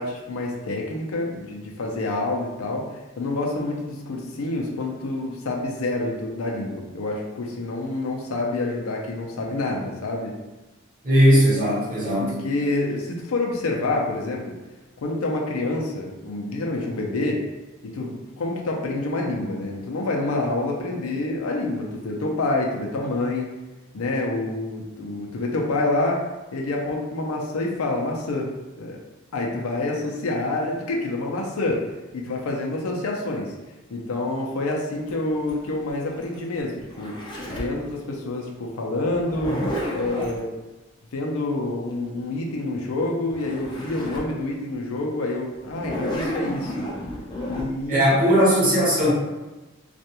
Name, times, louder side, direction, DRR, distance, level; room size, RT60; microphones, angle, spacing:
voice 1, 0.0-10.3 12.2-14.5 15.0-17.4 17.8-23.5 23.9-26.2 26.5-28.5 28.8-29.0 29.3-31.8 32.1-33.5 33.9-37.1 37.5-39.6 39.9-40.5 41.1-46.9 47.5-48.6, left 2 dB, 85° left, -1 dB, 0.5 m, -27 dB
voice 2, 11.0-12.3 47.9-49.1, equal, 40° right, -7 dB, 0.9 m, -18 dB
Zipper (clothing), 35.1-37.8 39.1-40.4 43.0-43.1 43.3-44.3 44.8-44.9 45.7-47.7, equal, 20° left, 0.3 m, -31 dB
2.4 x 2.2 x 2.8 m, 1.1 s
head